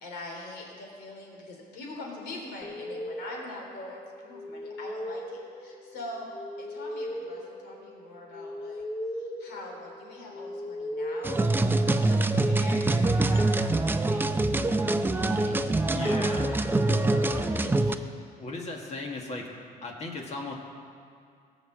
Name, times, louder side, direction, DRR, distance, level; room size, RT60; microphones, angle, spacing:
voice 1, 0.0-6.3 6.6-8.8 9.1-11.4 11.8-16.2 16.8-18.0, left 2 dB, 80° left, -1 dB, 3.5 m, -43 dB
sound 1, 2.6-12.3, left 1 dB, 25° left, 1.7 m, -39 dB
sound 2, 11.2-18.0, right 2 dB, 10° right, 0.5 m, -24 dB
voice 2, 15.9-16.5 18.4-19.5 19.8-20.5, left 3 dB, 40° left, 0 dB, 1.7 m, -36 dB
17.0 x 6.5 x 7.5 m, 2.3 s
cardioid pair, 110°, 17 cm